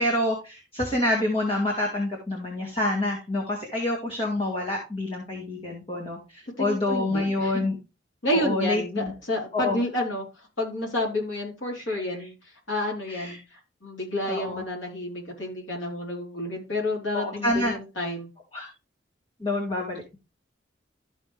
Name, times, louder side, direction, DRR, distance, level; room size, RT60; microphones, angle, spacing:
voice 1, 0.0-7.7 8.3-9.1 9.5-9.8 11.7-12.3 13.1-13.4 14.3-14.6 17.1-17.7 18.5-18.7 19.4-20.2, left 1 dB, 30° left, -1 dB, 2.2 m, -27 dB
voice 2, 6.6-7.5 8.2-10.3 10.6-12.4 12.7-18.3, left 1 dB, 75° left, -1 dB, 4.0 m, -30 dB
13.0 x 5.5 x 3.4 m, 0.28 s
head